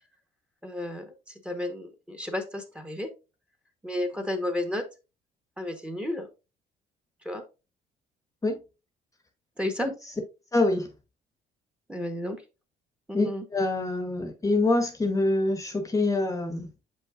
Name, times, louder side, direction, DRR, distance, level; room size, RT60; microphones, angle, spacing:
voice 1, 0.6-1.1 1.4-3.1 3.8-4.8 5.6-6.3 7.2-7.4 9.6-9.9 11.9-12.4 13.1-13.5, left 1 dB, 5° right, 1.2 m, -32 dB
voice 2, 10.5-10.9 13.1-16.7, left 2 dB, 20° left, 1.0 m, -25 dB
7.1 x 5.4 x 2.5 m
cardioid pair, 110°, 17 cm